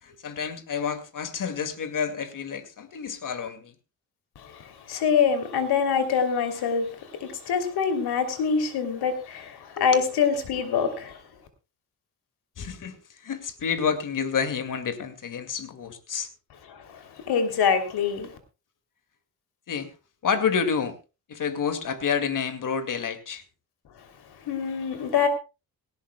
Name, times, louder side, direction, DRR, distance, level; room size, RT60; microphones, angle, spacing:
voice 1, 0.0-3.7 9.8-10.1 12.6-16.3 19.7-19.9 20.2-21.0 21.3-23.4, left 6 dB, 55° left, 2.3 m, -29 dB
voice 2, 4.3-11.2 16.7-18.4 24.4-25.3, left 6 dB, 85° left, 3.2 m, -25 dB
18.5 x 18.0 x 2.3 m
cardioid pair, 120°, 38 cm